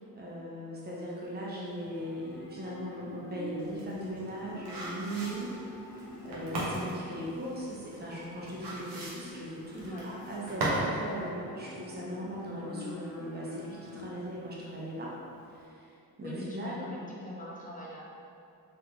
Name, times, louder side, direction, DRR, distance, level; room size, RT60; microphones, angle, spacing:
voice 1, 0.1-15.2 15.5-16.9, equal, 25° right, -5 dB, 0.8 m, -39 dB
Livestock farm animals working animals, 0.9-15.6, left 1 dB, 60° left, 0.9 m, -46 dB
sound 1, 3.6-11.0 11.3-11.4, right 1 dB, 80° right, 0.9 m, -36 dB
voice 2, 16.2-18.0, left 1 dB, 20° left, -5 dB, 0.9 m, -42 dB
3.6 x 2.7 x 2.9 m, 2.5 s
cardioid pair, 70°, 40 cm